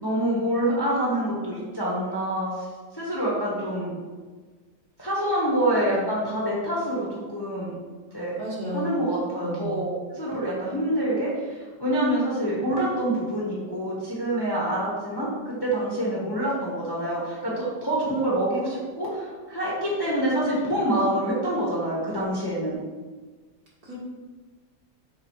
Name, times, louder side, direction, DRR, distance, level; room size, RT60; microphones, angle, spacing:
voice 1, 0.0-2.7 2.9-3.9 5.0-7.7 8.1-8.4 8.7-22.8, right 1 dB, 15° left, -6 dB, 1.4 m, -26 dB
voice 2, 8.1-9.0 9.3-9.8 23.8-24.0, right 1 dB, 50° right, -7 dB, 2.3 m, -34 dB
6.2 x 3.9 x 5.0 m, 1.4 s
omnidirectional pair, 2.1 m